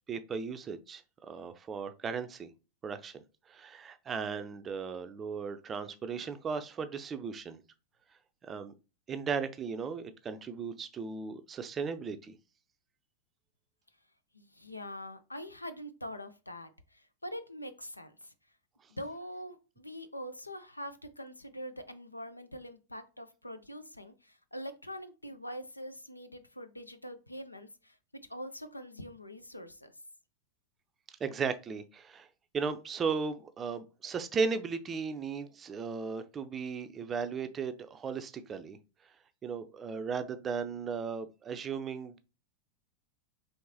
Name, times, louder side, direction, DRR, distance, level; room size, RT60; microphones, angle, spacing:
voice 1, 0.1-2.5 2.8-3.2 3.5-7.6 8.4-8.7 9.1-12.3 31.2-32.3 32.5-38.8 39.4-42.2, right 5 dB, 20° right, 0.5 m, -36 dB
voice 2, 14.3-18.3 18.9-29.9, equal, 85° left, 0.5 m, -44 dB
4.6 x 3.2 x 2.7 m
figure-of-eight pair, 90°, 0 cm